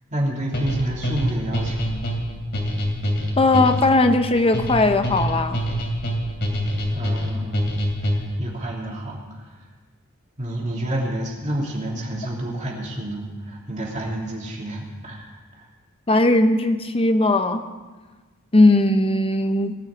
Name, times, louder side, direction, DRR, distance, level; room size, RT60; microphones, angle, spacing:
voice 1, 0.1-2.1 6.9-9.6 10.4-15.7, right 1 dB, 35° right, -3 dB, 3.1 m, -29 dB
sound 1, 0.5-8.5, equal, 55° left, 3.0 m, -25 dB
voice 2, 3.4-5.6 16.1-17.6 18.5-19.8, left 2 dB, 25° left, 8 dB, 0.9 m, -18 dB
18.5 x 6.4 x 8.5 m, 1.3 s
head